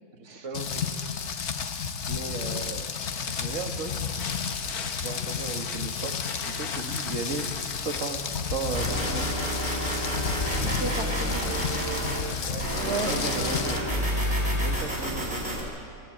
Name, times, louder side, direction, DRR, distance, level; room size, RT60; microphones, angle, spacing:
voice 1, 0.2-0.9 2.1-3.0 3.3-3.9 5.0-6.2 6.4-9.3 12.4-15.6, right 4 dB, 55° right, 5 dB, 1.9 m, -36 dB
Rain, 0.5-13.8, left 6 dB, 50° left, 1.2 m, -32 dB
sound 1, 2.9-9.9 11.7-11.8, left 5 dB, 75° left, 1.8 m, -42 dB
sound 2, 8.7-12.2 12.6-15.6, equal, 30° right, 5.7 m, -29 dB
voice 2, 10.4-11.6 12.8-14.1, right 4 dB, 80° right, 3 dB, 2.6 m, -35 dB
26.5 x 14.0 x 8.7 m, 2.3 s
omnidirectional pair, 1.6 m